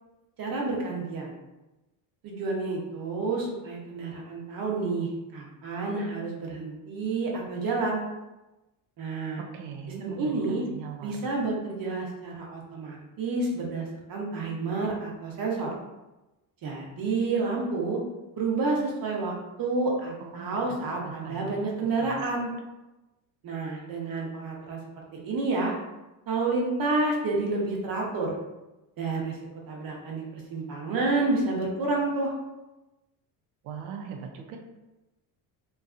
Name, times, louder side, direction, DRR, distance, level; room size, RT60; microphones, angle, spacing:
voice 1, 0.4-1.4 2.2-8.0 9.0-9.4 10.0-10.6 11.0-15.7 16.6-18.0 18.4-19.3 19.6-22.5 23.4-24.8 25.1-25.7 26.3-28.3 29.0-29.3 29.7-32.3, right 3 dB, 50° right, -1 dB, 0.8 m, -29 dB
voice 2, 9.4-11.2 20.2-21.7 22.0-22.1 33.6-34.6, right 6 dB, 90° right, 3 dB, 0.6 m, -40 dB
2.6 x 2.3 x 2.4 m, 1.0 s
cardioid pair, 120°, 46 cm